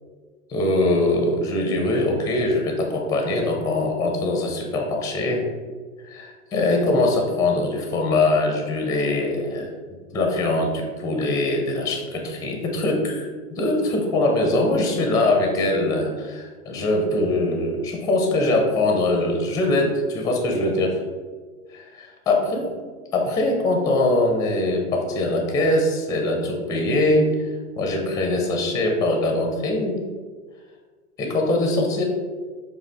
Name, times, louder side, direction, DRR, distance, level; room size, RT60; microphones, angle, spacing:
voice 1, 0.5-5.4 6.1-9.7 10.1-21.0 21.7-22.7 23.1-27.3 27.8-30.0 31.2-32.0, left 2 dB, 10° left, 2 dB, 0.5 m, -22 dB
4.8 x 2.4 x 3.4 m, 1.5 s
hypercardioid pair, 95°, 45 cm